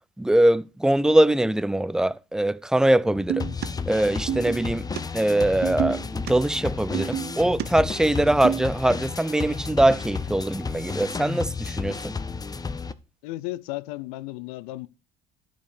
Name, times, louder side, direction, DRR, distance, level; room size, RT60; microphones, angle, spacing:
voice 1, 0.2-3.5 3.9-4.9 5.1-12.1, right 1 dB, 5° right, 0.4 m, -22 dB
sound 1, 3.0-12.9, left 4 dB, 20° left, 0.8 m, -32 dB
sound 2, 3.3-3.7 4.3-4.6 5.0-5.1 5.6-6.3 6.9-7.7 8.1-8.7, right 10 dB, 60° right, 0.8 m, -28 dB
voice 2, 13.2-14.9, left 18 dB, 90° left, 0.5 m, -34 dB
12.0 x 5.2 x 6.7 m
supercardioid pair, 80°, 18 cm